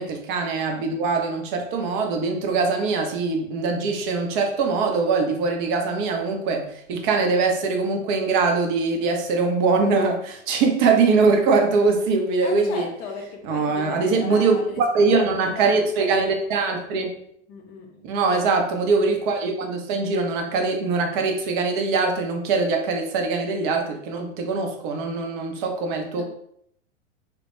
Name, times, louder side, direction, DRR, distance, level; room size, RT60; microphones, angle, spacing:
voice 1, 0.0-12.9 13.4-17.1 18.0-26.2, right 4 dB, 40° right, 3 dB, 0.6 m, -22 dB
voice 2, 12.4-15.8 17.5-18.2 26.2-26.3, left 5 dB, 25° left, 2 dB, 0.5 m, -37 dB
2.1 x 2.1 x 2.9 m, 0.70 s
figure-of-eight pair, 95°, 38 cm